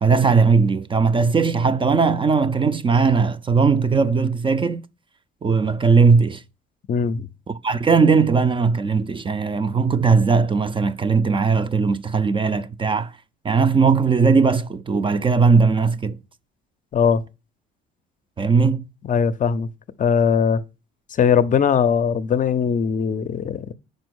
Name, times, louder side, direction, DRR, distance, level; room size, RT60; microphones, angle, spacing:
voice 1, 0.0-4.8 5.4-6.4 7.5-13.1 13.4-16.2 18.4-18.8, right 5 dB, 25° right, 0.5 m, -18 dB
voice 2, 6.9-7.3 16.9-17.2 19.0-19.7 20.0-20.6 21.2-23.7, left 7 dB, 40° left, 0.6 m, -20 dB
5.2 x 4.5 x 6.2 m
supercardioid pair, 85°, 21 cm